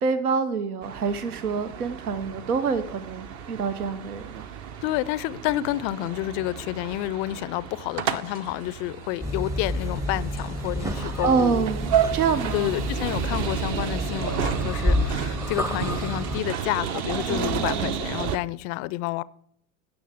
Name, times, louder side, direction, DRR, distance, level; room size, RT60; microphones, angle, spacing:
voice 1, 0.0-4.5 10.9-12.8 17.3-18.0, right 5 dB, 80° right, 0.9 m, -27 dB
sound 1, 0.8-18.4, right 8 dB, 45° right, 0.9 m, -32 dB
voice 2, 4.8-11.6 12.5-19.2, left 17 dB, 35° left, 0.4 m, -29 dB
sound 2, 9.2-16.4, left 1 dB, 5° right, 0.6 m, -29 dB
16.5 x 6.2 x 3.5 m
figure-of-eight pair, 85°, 44 cm